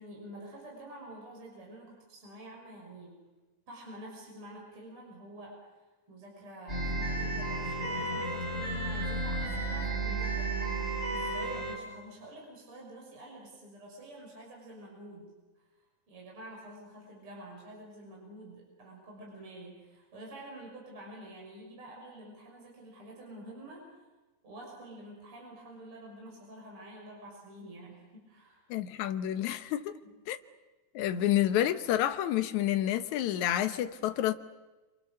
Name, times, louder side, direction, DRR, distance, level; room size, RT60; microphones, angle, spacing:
voice 1, 0.0-3.2 3.7-5.6 6.1-10.5 11.1-15.3 15.6-15.7 16.1-24.0 24.4-28.7 30.0-30.1, right 1 dB, 35° right, 7.1 m, -48 dB
sound 1, 6.7-11.8, right 2 dB, 15° right, 5.8 m, -33 dB
voice 2, 28.7-30.0 30.3-30.4 30.9-34.3, left 12 dB, 70° left, 2.0 m, -29 dB
28.0 x 27.5 x 6.7 m
omnidirectional pair, 4.2 m